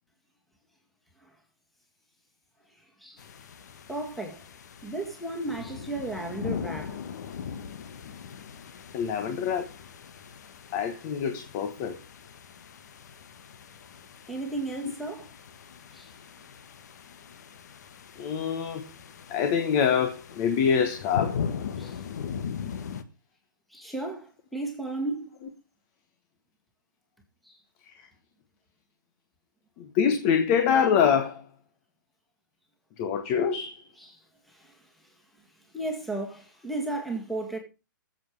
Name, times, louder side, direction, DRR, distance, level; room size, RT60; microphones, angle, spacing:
sound 1, 3.2-23.0, left 7 dB, 55° left, 1.4 m, -40 dB
voice 1, 3.9-4.4 4.8-7.0 14.3-15.3 15.9-16.1 21.8-22.0 23.7-25.4 27.5-27.6 34.0-34.2 34.5-34.7 35.7-37.6, right 2 dB, ahead, 2.1 m, -34 dB
voice 2, 8.9-9.7 10.7-12.0 18.2-18.9 19.3-21.4 27.9-28.1 29.8-31.4 33.0-33.8, left 7 dB, 30° left, 1.3 m, -25 dB
20.0 x 7.7 x 3.3 m
hypercardioid pair, 150°, 11 cm